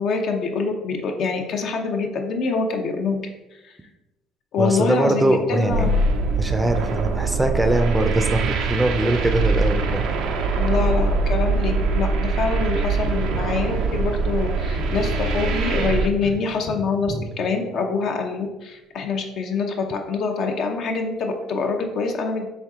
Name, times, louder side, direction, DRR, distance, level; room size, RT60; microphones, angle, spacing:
voice 1, 0.0-3.2 3.6-3.7 4.5-6.0 10.6-22.5, left 4 dB, 65° left, 3 dB, 0.7 m, -25 dB
voice 2, 4.6-5.9 6.4-10.1 14.9-15.0, right 1 dB, 15° right, 6 dB, 0.5 m, -22 dB
sound 1, 5.7-16.1, right 3 dB, 75° right, 0.5 m, -23 dB
Tap, 13.0-18.3 20.9-21.0, left 1 dB, 40° left, 0.9 m, -38 dB
4.4 x 2.7 x 3.6 m, 1.0 s
supercardioid pair, 85°, 0 cm